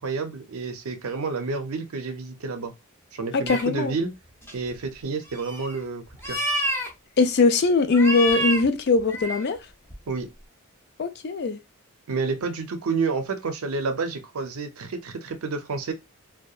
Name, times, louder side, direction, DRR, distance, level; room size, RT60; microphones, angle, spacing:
voice 1, 0.0-2.7 3.1-4.1 4.5-6.4 10.1-10.3 12.1-15.9, right 4 dB, 75° right, 0.5 m, -29 dB
voice 2, 3.3-3.9 7.2-9.6 11.0-11.6, left 3 dB, 50° left, 0.4 m, -21 dB
kitten meows various many, 3.5-3.6 4.4-4.8 5.3-5.8 6.1-6.9 7.9-8.7 8.9-9.5 9.9-10.0, equal, 10° left, 0.6 m, -28 dB
2.7 x 2.2 x 2.3 m
head